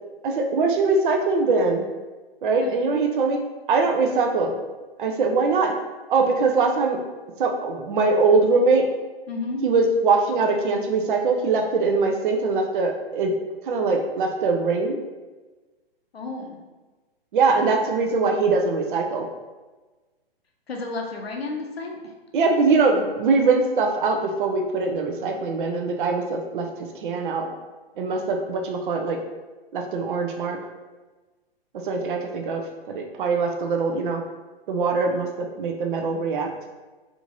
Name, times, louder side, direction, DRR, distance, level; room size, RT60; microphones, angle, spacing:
voice 1, 0.2-1.9 2.4-3.4 3.7-4.5 5.0-5.7 6.1-7.0 7.4-8.8 9.6-13.3 13.7-15.0 17.3-19.3 22.3-26.7 27.0-27.5 28.0-29.2 29.7-30.6 31.8-32.6 32.9-34.2 34.7-36.5, right 4 dB, 55° right, 3 dB, 0.5 m, -22 dB
voice 2, 9.3-9.6 16.1-16.6 20.7-22.0, left 3 dB, 80° left, 1 dB, 0.8 m, -31 dB
3.4 x 2.5 x 2.9 m, 1.2 s
figure-of-eight pair, 120°, 30 cm